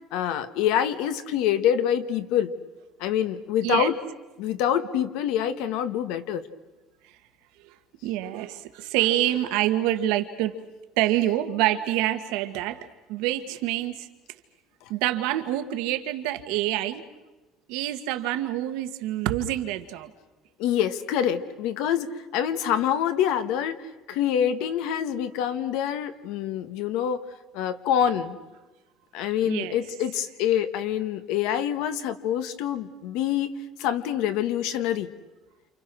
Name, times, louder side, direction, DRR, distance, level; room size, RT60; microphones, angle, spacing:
voice 1, 0.1-2.5 3.0-3.9 4.4-6.4 20.6-27.2 27.5-28.4 29.1-33.5 33.8-35.1, left 9 dB, 75° left, 10 dB, 1.6 m, -26 dB
voice 2, 8.0-10.5 11.0-14.1 14.9-17.0 17.7-20.1 29.4-29.8, right 13 dB, 80° right, 8 dB, 1.8 m, -26 dB
28.5 x 28.5 x 6.3 m, 1.1 s
cardioid pair, 160°, 0 cm